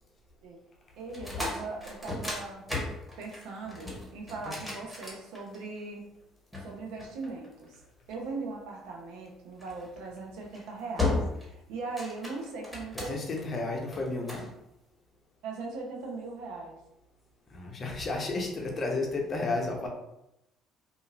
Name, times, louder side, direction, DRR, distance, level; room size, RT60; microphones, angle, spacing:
voice 1, 1.0-2.6 3.2-6.0 6.6-7.8 8.1-13.5 15.4-16.8, right 3 dB, 70° right, 1 dB, 0.6 m, -39 dB
sound 1, 1.1-5.8 6.5-7.8 9.6-9.9 10.4-10.6 11.0-11.5 11.8-13.4 13.9-14.5, left 2 dB, ahead, 1.2 m, -35 dB
voice 2, 12.9-14.5 17.5-19.9, left 2 dB, 40° left, 1 dB, 0.7 m, -32 dB
2.8 x 2.5 x 2.6 m, 0.87 s
hypercardioid pair, 60°, 0 cm